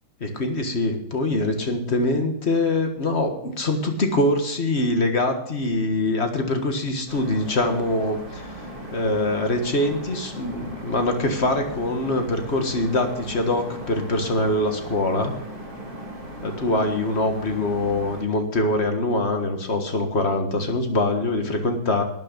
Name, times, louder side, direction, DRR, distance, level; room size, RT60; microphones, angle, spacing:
voice 1, 0.2-15.3 16.4-22.0, left 2 dB, 35° left, 5 dB, 1.6 m, -24 dB
sound 1, 7.1-18.2, right 1 dB, 25° right, 2.6 m, -38 dB
12.0 x 9.2 x 6.7 m, 0.75 s
omnidirectional pair, 2.3 m